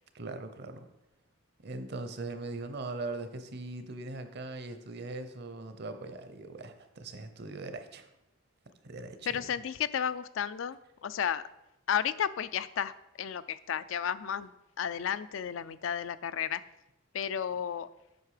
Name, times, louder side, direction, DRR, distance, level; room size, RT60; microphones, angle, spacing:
voice 1, 0.1-0.8 1.6-8.1 8.8-9.4, right 2 dB, 55° right, 9 dB, 0.8 m, -40 dB
voice 2, 9.3-11.4 11.9-12.9 13.2-14.5 14.8-16.6 17.1-17.9, left 8 dB, 70° left, 14 dB, 0.4 m, -32 dB
8.0 x 5.6 x 4.9 m, 0.89 s
head